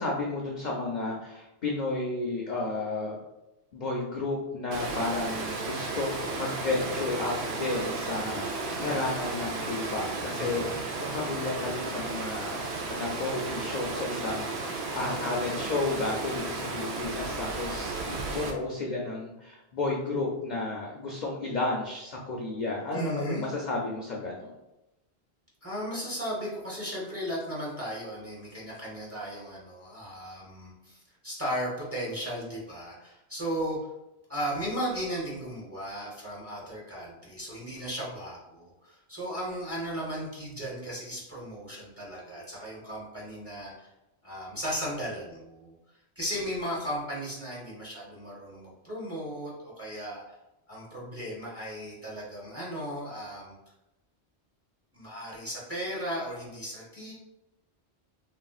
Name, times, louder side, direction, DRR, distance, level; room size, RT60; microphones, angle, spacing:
voice 1, 0.0-3.2 3.7-24.5, left 3 dB, 55° left, -2 dB, 0.5 m, -32 dB
Water, 4.7-18.5, right 3 dB, 75° right, 0.8 m, -34 dB
voice 2, 10.3-10.8 15.1-15.7 22.9-23.5 25.6-33.8 34.3-43.9 44.2-45.7 46.2-50.2 50.7-53.5 54.9-57.1, equal, 15° right, -6 dB, 0.8 m, -36 dB
3.2 x 2.7 x 2.3 m, 0.93 s
omnidirectional pair, 1.1 m